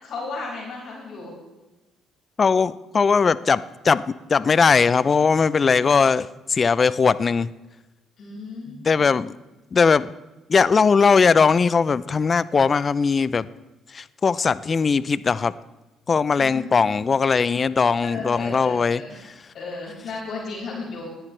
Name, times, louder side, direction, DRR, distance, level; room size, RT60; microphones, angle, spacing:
voice 1, 0.0-1.3 8.2-9.1 16.3-17.0 18.0-19.2 19.5-21.1, left 3 dB, 60° left, -4 dB, 5.5 m, -35 dB
voice 2, 2.4-7.5 8.8-9.3 9.7-10.1 10.5-13.5 13.9-15.5 16.1-19.0, left 5 dB, 40° left, 17 dB, 0.5 m, -19 dB
19.5 x 10.5 x 3.3 m, 1.1 s
supercardioid pair, 60°, 0 cm